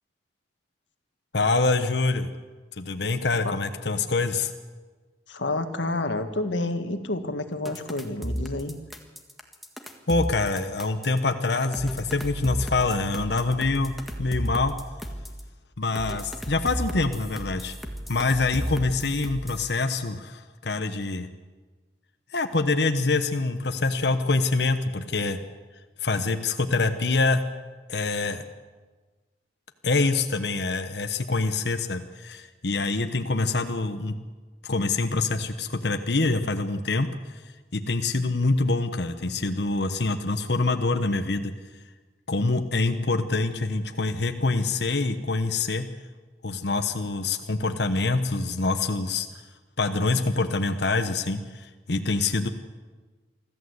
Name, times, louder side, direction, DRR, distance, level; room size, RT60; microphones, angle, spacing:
voice 1, 1.3-2.3 2.8-4.5 10.1-14.8 15.8-17.7 18.1-21.3 22.3-25.4 26.0-27.4 27.9-28.4 29.8-34.1 34.6-37.4 37.7-41.5 42.3-45.9 46.4-49.3 49.8-52.5, left 3 dB, 65° left, 7 dB, 1.1 m, -25 dB
voice 2, 5.3-8.8, left 2 dB, 90° left, 7 dB, 1.7 m, -29 dB
sound 1, 7.6-11.2 11.7-15.4 15.9-19.7, equal, ahead, 1.7 m, -33 dB
24.0 x 14.0 x 8.0 m, 1.3 s
head